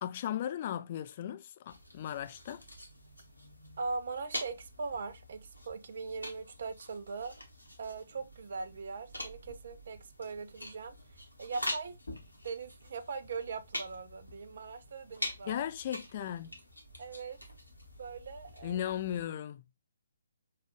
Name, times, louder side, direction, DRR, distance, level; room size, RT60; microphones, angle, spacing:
voice 1, 0.0-2.6 15.5-16.5 18.6-19.6, left 10 dB, 35° left, 0.3 m, -36 dB
sound 1, 1.7-19.2, left 1 dB, 85° left, 1.1 m, -45 dB
voice 2, 3.8-7.4 7.8-12.0 12.4-15.6 17.0-17.4 18.0-18.8, right 4 dB, 50° right, 0.4 m, -40 dB
sound 2, 11.9-17.1, left 2 dB, 55° left, 0.9 m, -55 dB
4.7 x 2.3 x 3.0 m
figure-of-eight pair, 135°, 0 cm